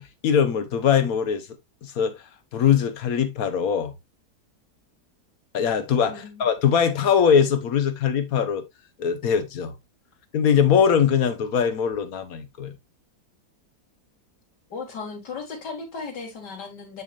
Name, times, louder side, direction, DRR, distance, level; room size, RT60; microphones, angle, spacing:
voice 1, 0.0-1.5 1.8-2.1 2.5-3.9 5.5-8.6 9.0-9.7 10.3-12.7, left 7 dB, 65° left, 1.3 m, -21 dB
voice 2, 6.1-6.5 14.7-17.0, left 4 dB, 90° left, 2.5 m, -36 dB
7.0 x 6.3 x 2.4 m
omnidirectional pair, 1.8 m